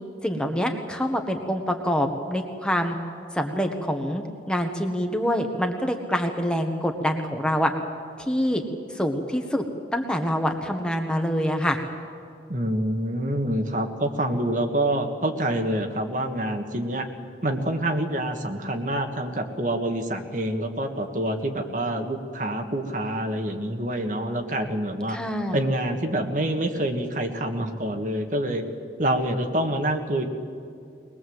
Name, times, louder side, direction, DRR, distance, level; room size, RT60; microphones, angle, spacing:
voice 1, 0.2-2.9 3.3-7.7 8.2-8.6 8.9-9.7 9.9-11.8 25.1-25.6, equal, 5° left, 4 dB, 1.3 m, -26 dB
voice 2, 12.5-17.1 17.4-25.2 25.5-28.6 29.0-30.2, right 1 dB, 45° right, 5 dB, 1.6 m, -26 dB
21.5 x 21.0 x 7.9 m, 2.4 s
head